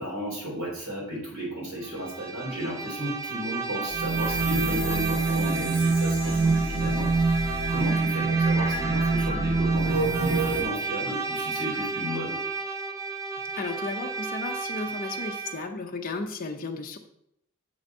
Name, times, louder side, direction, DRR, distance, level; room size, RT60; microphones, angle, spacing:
voice 1, 0.0-7.1 7.7-12.4, equal, 85° right, -4 dB, 3.1 m, -34 dB
Bowed string instrument, 1.8-15.7, right 4 dB, 15° right, 0.4 m, -33 dB
sound 1, 3.9-10.6, right 3 dB, 45° right, 1.6 m, -25 dB
voice 2, 13.5-17.0, left 3 dB, 40° left, 3 dB, 0.6 m, -34 dB
7.1 x 4.0 x 5.3 m, 0.74 s
head